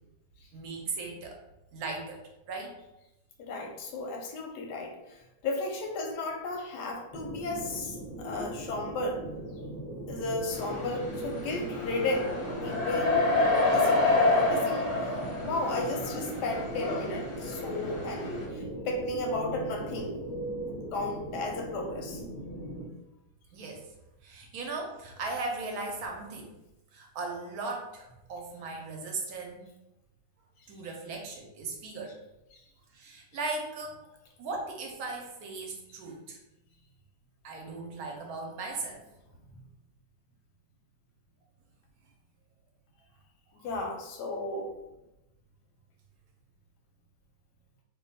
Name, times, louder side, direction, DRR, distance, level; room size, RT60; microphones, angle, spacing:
voice 1, 0.5-1.4 1.7-2.2 2.5-2.8 12.7-12.8 23.5-23.9 24.2-26.5 26.9-29.7 30.7-32.2 32.9-33.9 34.4-36.4 37.4-39.0, right 3 dB, 70° right, 1 dB, 1.0 m, -37 dB
voice 2, 3.4-9.2 10.1-12.3 12.6-14.9 15.4-20.1 20.7-22.2 32.5-32.6 43.6-44.7, left 2 dB, 90° left, 2 dB, 1.3 m, -34 dB
sound 1, 7.1-22.9, right 1 dB, 20° left, 0.5 m, -39 dB
sound 2, 10.5-18.4, left 2 dB, 50° left, 0.7 m, -28 dB
2.9 x 2.2 x 4.0 m, 0.94 s
omnidirectional pair, 1.8 m